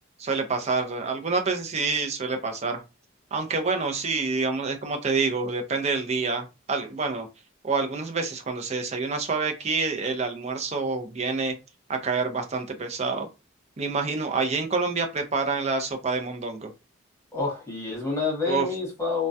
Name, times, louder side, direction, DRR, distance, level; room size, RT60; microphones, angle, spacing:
voice 1, 0.2-2.8 3.3-7.3 7.6-11.5 11.9-13.3 13.8-16.7 18.5-18.7, right 4 dB, 30° right, 0.4 m, -27 dB
voice 2, 17.3-19.3, left 4 dB, 15° left, 0.9 m, -28 dB
2.2 x 2.1 x 2.6 m
head